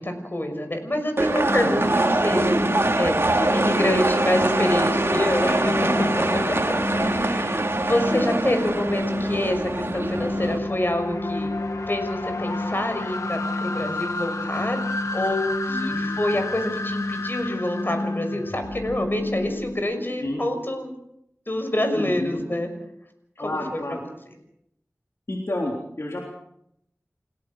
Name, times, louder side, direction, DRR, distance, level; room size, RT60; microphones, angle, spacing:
voice 1, 0.0-2.5 3.0-6.6 6.9-11.5 11.9-14.8 15.1-20.9 21.5-22.7 23.4-23.5, left 1 dB, 40° left, 6 dB, 6.0 m, -27 dB
sound 1, 1.2-10.6, right 2 dB, 50° right, 2.7 m, -24 dB
sound 2, 1.5-19.8, left 2 dB, 85° left, 2.2 m, -30 dB
voice 2, 1.6-1.9 3.4-3.6 5.7-6.1 6.5-6.6 15.7-16.2 20.2-20.4 21.9-22.4 23.4-24.0 25.3-26.2, left 1 dB, 60° left, 0 dB, 3.8 m, -30 dB
29.0 x 17.5 x 6.4 m, 0.76 s
wide cardioid pair, 50°, 5 cm